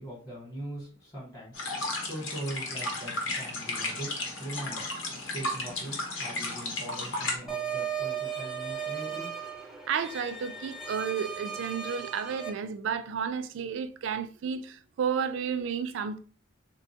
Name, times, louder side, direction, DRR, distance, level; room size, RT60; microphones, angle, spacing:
voice 1, 0.0-4.1 4.4-4.9 5.3-5.9 6.2-9.3, right 1 dB, 20° left, 0.9 m, -41 dB
sound 1, 1.5-7.4, left 2 dB, 70° left, 0.8 m, -34 dB
sound 2, 7.5-12.5, right 7 dB, ahead, 0.5 m, -36 dB
voice 2, 9.9-16.2, right 7 dB, 65° right, 0.3 m, -32 dB
3.6 x 2.2 x 2.7 m
head